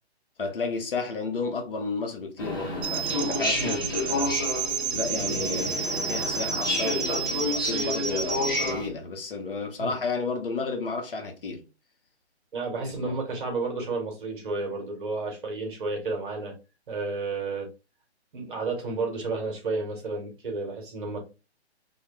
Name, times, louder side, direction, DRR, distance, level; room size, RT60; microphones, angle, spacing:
voice 1, 0.4-4.4 4.9-11.6 12.8-13.1, left 4 dB, 55° left, 0.7 m, -32 dB
sound 1, 2.4-8.9, left 2 dB, 20° left, 0.4 m, -30 dB
sound 2, 2.8-8.7, right 6 dB, 70° right, 0.8 m, -31 dB
voice 2, 12.5-16.5 16.9-17.7 18.3-21.2, right 3 dB, 50° right, 1.0 m, -31 dB
2.2 x 2.1 x 2.9 m
figure-of-eight pair, 140°, 34 cm